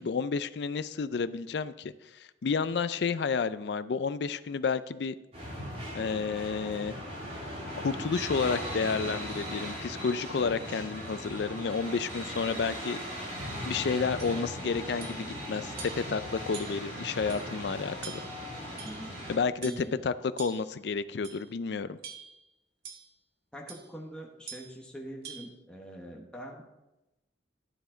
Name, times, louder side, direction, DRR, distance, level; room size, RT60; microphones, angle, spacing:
voice 1, 0.0-5.1 5.9-7.0 7.8-13.0 13.7-18.2 19.3-22.0, left 5 dB, 65° left, 14 dB, 0.4 m, -31 dB
sound 1, 5.3-19.4, equal, 35° right, 2.6 m, -38 dB
sound 2, 14.2-14.4 15.0-15.3 15.8-16.1 16.5-16.9 17.3-17.4 18.0-18.4 18.8-19.2 19.6-19.9 20.4-20.7 21.2-21.5 22.0-22.4 22.8-23.1 23.7-23.9 24.5-24.8 25.2-25.5, right 6 dB, 60° right, 1.4 m, -45 dB
voice 2, 18.8-19.1 19.6-20.0 23.5-26.6, equal, 5° left, -2 dB, 1.2 m, -43 dB
12.0 x 7.1 x 3.8 m, 0.96 s
head